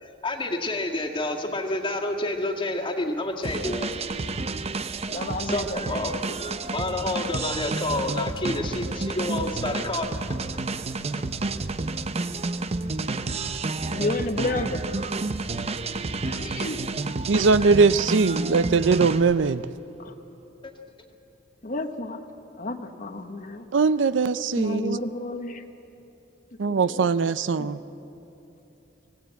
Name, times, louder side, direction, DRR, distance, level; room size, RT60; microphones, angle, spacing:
voice 1, 0.0-4.0 5.4-6.1 6.7-10.1 10.5-10.6 20.6-20.7, left 2 dB, 25° left, 1 dB, 1.9 m, -29 dB
sound 1, 3.4-19.6, right 3 dB, 35° right, 0.7 m, -30 dB
voice 2, 5.1-6.5 13.9-14.8 16.2-16.8 20.0-20.1 21.6-22.2 22.6-23.7 24.6-25.6 26.7-27.1 27.6-27.7, left 2 dB, 45° left, 7 dB, 1.1 m, -31 dB
voice 3, 17.3-19.6 23.7-25.0 26.6-27.8, right 4 dB, 70° right, 15 dB, 0.5 m, -21 dB
25.0 x 17.0 x 8.2 m, 3.0 s
head